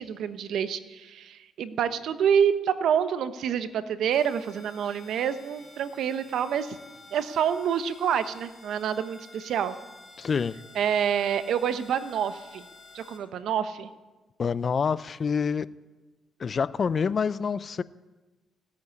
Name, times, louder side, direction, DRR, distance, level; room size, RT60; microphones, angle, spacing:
voice 1, 0.0-6.8 7.1-9.7 10.7-12.6 12.9-13.9, right 8 dB, 75° right, 12 dB, 1.0 m, -27 dB
sound 1, 4.1-13.2, left 3 dB, 20° left, 4.8 m, -51 dB
voice 2, 10.2-10.5 14.4-15.7 16.4-17.8, left 6 dB, 45° left, 18 dB, 0.5 m, -27 dB
16.5 x 8.5 x 9.8 m, 1.2 s
cardioid pair, 90°, 0 cm